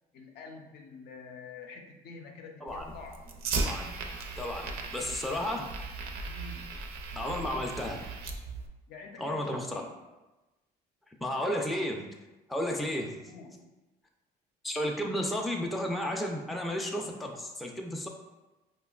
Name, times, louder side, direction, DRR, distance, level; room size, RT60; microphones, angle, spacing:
voice 1, 0.1-3.2 6.2-6.8 8.9-9.9 13.3-13.7, left 4 dB, 75° left, 3 dB, 0.5 m, -47 dB
voice 2, 2.6-2.9 3.6-4.0 4.3-4.6 4.9-5.7 7.2-8.1 9.2-9.8 11.1-12.1 12.5-13.3 14.6-18.1, left 1 dB, ahead, 1 dB, 0.3 m, -33 dB
Fire, 2.7-8.7, right 3 dB, 65° right, 0.5 m, -37 dB
4.9 x 2.2 x 2.3 m, 1.1 s
cardioid pair, 110°, 17 cm